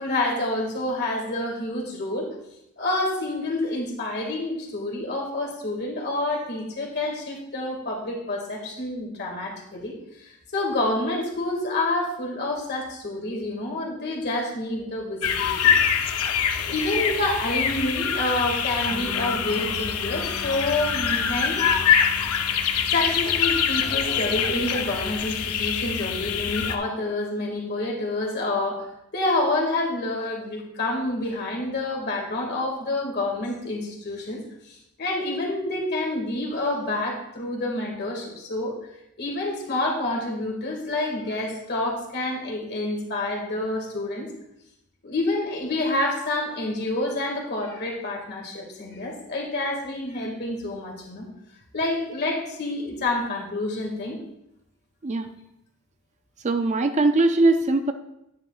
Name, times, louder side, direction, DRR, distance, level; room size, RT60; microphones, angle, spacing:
voice 1, 0.0-2.3 2.8-9.9 10.2-15.7 16.6-21.7 22.9-28.9 29.1-34.4 34.6-38.7 39.2-44.3 45.0-51.3 51.7-54.2, left 2 dB, 45° left, -1 dB, 2.1 m, -28 dB
sound 1, 15.2-26.8, left 7 dB, 80° left, 0.7 m, -24 dB
Bass guitar, 18.9-25.2, left 3 dB, 55° right, 1.3 m, -44 dB
voice 2, 56.4-57.9, right 2 dB, 30° right, 8 dB, 0.4 m, -21 dB
10.5 x 9.5 x 2.4 m, 0.83 s
head